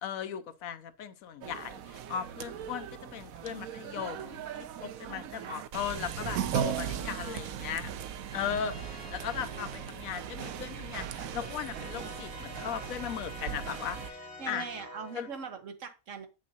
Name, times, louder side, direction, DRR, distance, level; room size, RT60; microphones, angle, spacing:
voice 1, 0.0-7.9 8.3-14.7 15.1-15.3, left 9 dB, 75° left, 1.1 m, -37 dB
sound 1, 1.4-14.1, right 9 dB, 80° right, 1.1 m, -38 dB
voice 2, 6.5-7.5 14.4-16.3, right 6 dB, 65° right, 1.3 m, -42 dB
sound 2, 8.3-15.5, left 1 dB, 15° right, 3.9 m, -48 dB
8.3 x 6.3 x 2.8 m
omnidirectional pair, 1.5 m